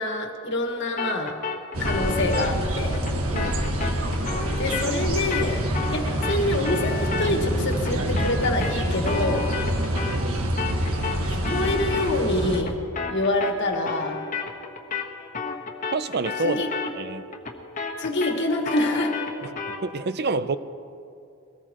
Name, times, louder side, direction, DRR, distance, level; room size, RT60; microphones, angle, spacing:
voice 1, 0.0-1.4 1.8-3.0 4.6-5.6 5.9-9.5 11.3-12.8 13.1-14.2 16.4-16.7 18.0-19.1, left 1 dB, 55° left, 3 dB, 1.7 m, -26 dB
sound 1, 1.0-10.3 10.6-19.9, left 4 dB, 40° left, 1.3 m, -33 dB
sound 2, 1.7-12.6, right 1 dB, 85° right, 1.6 m, -26 dB
voice 2, 10.1-10.7 15.9-16.6 16.9-17.2 19.7-20.6, right 3 dB, 50° right, 13 dB, 0.6 m, -28 dB
22.0 x 19.0 x 3.0 m, 2.5 s
head